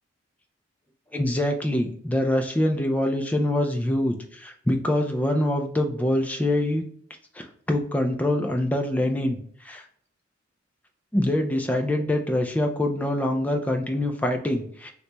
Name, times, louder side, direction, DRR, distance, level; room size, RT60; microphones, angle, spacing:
voice 1, 1.1-6.8 7.3-9.4 9.6-9.8 11.1-14.9, left 1 dB, 10° left, 4 dB, 0.3 m, -24 dB
3.0 x 2.2 x 3.9 m, 0.62 s
head